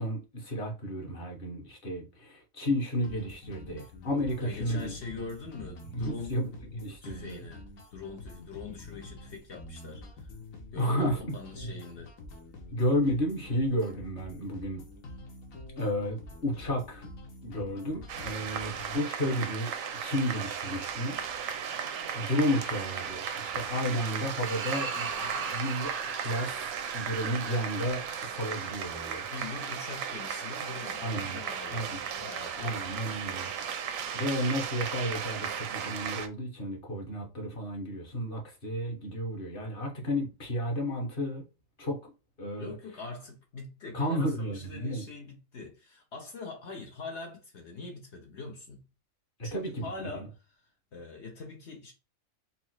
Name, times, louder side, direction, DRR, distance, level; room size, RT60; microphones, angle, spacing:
voice 1, 0.0-4.9 5.9-7.4 10.8-11.3 11.7-11.8 12.7-14.8 15.8-17.1 17.4-19.7 20.0-21.8 22.1-26.0 26.2-29.3 31.0-31.4 31.7-32.0 32.5-33.5 34.1-41.4 41.8-42.1 42.4-42.7 43.9-45.0 49.5-50.3, equal, 40° left, 1.3 m, -32 dB
sound 1, 3.0-19.0, left 2 dB, 80° left, 1.3 m, -47 dB
voice 2, 4.4-6.4 7.0-10.3 10.7-12.1 29.3-32.9 42.6-48.8 49.4-51.9, left 4 dB, 60° left, 1.0 m, -43 dB
sound 2, 18.1-36.3, right 7 dB, 80° right, 1.0 m, -36 dB
sound 3, 24.4-30.9, right 4 dB, 55° right, 0.6 m, -41 dB
4.3 x 2.0 x 4.3 m
omnidirectional pair, 1.4 m